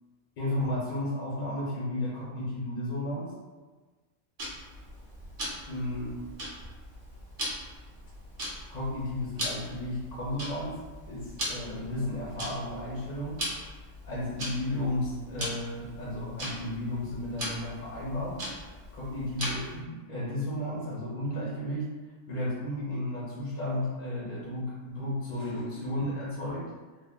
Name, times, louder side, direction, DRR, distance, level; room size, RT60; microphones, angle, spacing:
voice 1, 0.4-3.3 5.7-6.1 8.7-10.8 11.1-13.4 14.0-18.4 18.9-21.9 22.3-26.7, left 1 dB, 85° left, -7 dB, 1.4 m, -33 dB
Tick-tock, 4.4-19.8, equal, 45° right, 0.8 m, -39 dB
3.5 x 2.2 x 3.4 m, 1.3 s
omnidirectional pair, 1.6 m